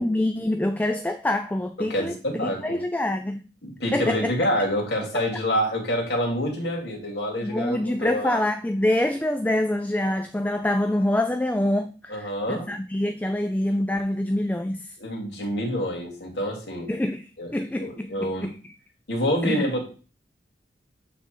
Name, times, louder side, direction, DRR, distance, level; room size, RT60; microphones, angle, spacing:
voice 1, 0.0-3.4 3.9-4.3 7.4-15.0 16.9-17.2 17.5-18.5 19.4-19.7, left 1 dB, 10° left, 0.3 m, -26 dB
voice 2, 1.8-2.8 3.6-8.4 12.1-12.7 15.0-16.9 17.4-18.5 19.1-19.8, equal, 75° left, 2.3 m, -27 dB
8.1 x 3.6 x 4.4 m
head